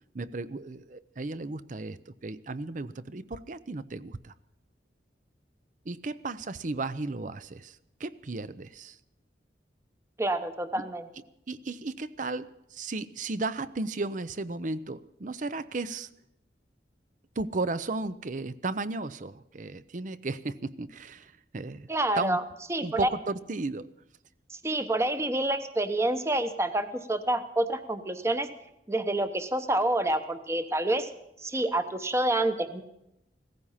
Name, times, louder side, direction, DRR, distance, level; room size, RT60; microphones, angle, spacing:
voice 1, 0.1-4.3 5.9-9.0 11.5-16.1 17.4-21.9 22.2-22.4 22.8-23.9, right 3 dB, 45° right, 15 dB, 0.6 m, -34 dB
voice 2, 10.2-11.1 21.9-22.4 22.7-23.1 24.5-28.5 28.9-31.1 31.4-32.8, right 1 dB, 15° right, 9 dB, 0.9 m, -28 dB
17.0 x 15.0 x 5.7 m, 0.84 s
head